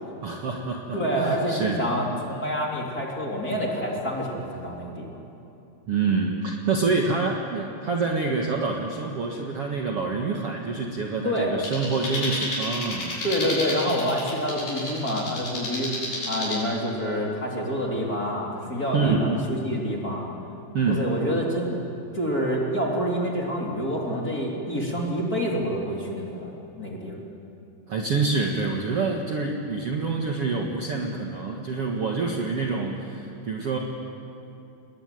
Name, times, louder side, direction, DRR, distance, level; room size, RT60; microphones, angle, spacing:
voice 1, 0.2-1.8 5.9-13.2 18.9-19.5 20.7-21.1 27.9-33.8, right 4 dB, 50° right, 0 dB, 2.0 m, -26 dB
voice 2, 0.9-5.2 11.2-11.5 13.2-16.0 16.2-20.3 20.9-21.8 22.1-27.2, equal, 25° left, -2 dB, 3.4 m, -27 dB
sound 1, 11.6-16.6, left 1 dB, 70° left, 8.2 m, -32 dB
28.5 x 21.5 x 9.3 m, 2.8 s
omnidirectional pair, 4.5 m